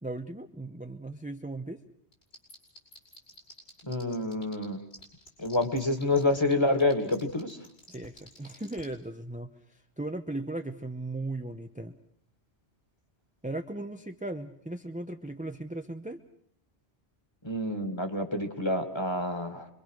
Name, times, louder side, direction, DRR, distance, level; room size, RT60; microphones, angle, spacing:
voice 1, 0.0-1.8 7.9-9.5 10.0-11.9 13.4-16.2, right 2 dB, 10° right, 5 dB, 0.8 m, -37 dB
sound 1, 2.1-4.6 4.9-8.8, left 2 dB, 70° left, 6.3 m, -49 dB
voice 2, 3.8-4.8 5.4-7.6 17.4-19.7, left 2 dB, 25° left, 6 dB, 2.2 m, -28 dB
26.0 x 23.0 x 6.5 m, 0.67 s
omnidirectional pair, 1.1 m